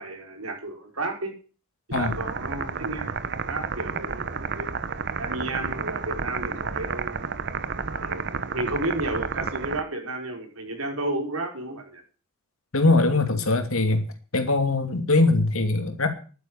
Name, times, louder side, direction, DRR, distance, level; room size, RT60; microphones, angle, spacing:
voice 1, 0.0-1.3 1.9-3.1 3.5-4.7 5.2-7.4 7.9-12.0, right 2 dB, 85° right, 2 dB, 5.4 m, -32 dB
sound 1, 1.9-9.8, right 5 dB, 55° right, 1.0 m, -31 dB
voice 2, 12.7-14.1 14.3-16.1, left 2 dB, 70° left, 7 dB, 2.8 m, -21 dB
11.5 x 9.8 x 9.0 m, 0.38 s
head